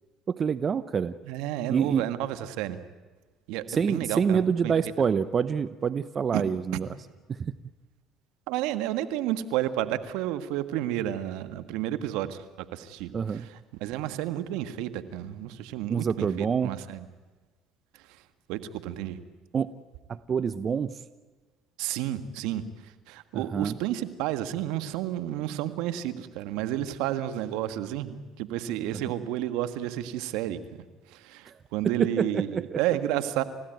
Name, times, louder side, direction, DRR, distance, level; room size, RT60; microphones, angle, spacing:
voice 1, 0.3-1.1 1.7-2.0 3.7-6.9 7.3-7.5 13.1-13.5 15.9-16.7 19.5-19.7 20.1-21.0 23.3-23.8 28.9-29.0 31.5-31.6 31.8-32.8, right 6 dB, 40° right, 14 dB, 0.9 m, -27 dB
voice 2, 1.3-2.8 3.5-4.4 4.6-4.7 6.3-6.4 8.5-17.1 17.9-18.2 18.5-19.2 21.8-30.6 31.1-33.4, right 12 dB, 75° right, 10 dB, 1.6 m, -31 dB
30.0 x 16.0 x 9.3 m, 1.3 s
hypercardioid pair, 70°, 0 cm